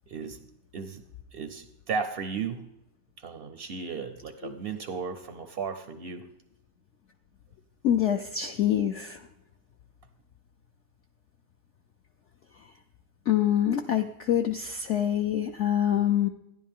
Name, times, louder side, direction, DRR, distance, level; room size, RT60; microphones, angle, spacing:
voice 1, 0.1-0.4 0.7-1.0 1.3-2.6 3.2-6.3, right 5 dB, 65° right, 9 dB, 0.5 m, -35 dB
voice 2, 7.8-9.2 13.3-16.3, left 10 dB, 70° left, 6 dB, 0.6 m, -25 dB
12.5 x 10.5 x 3.6 m, 0.87 s
omnidirectional pair, 1.8 m